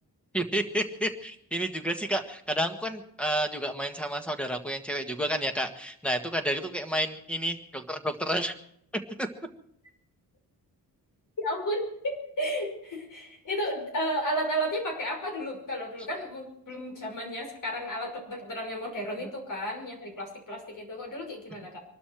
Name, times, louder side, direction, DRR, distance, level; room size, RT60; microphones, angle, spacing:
voice 1, 0.3-8.5 9.2-9.3 19.2-19.3, equal, 5° left, 6 dB, 1.6 m, -30 dB
voice 2, 11.4-21.8, equal, 55° left, 2 dB, 5.9 m, -33 dB
24.5 x 12.5 x 4.6 m, 0.70 s
wide cardioid pair, 150°, 38 cm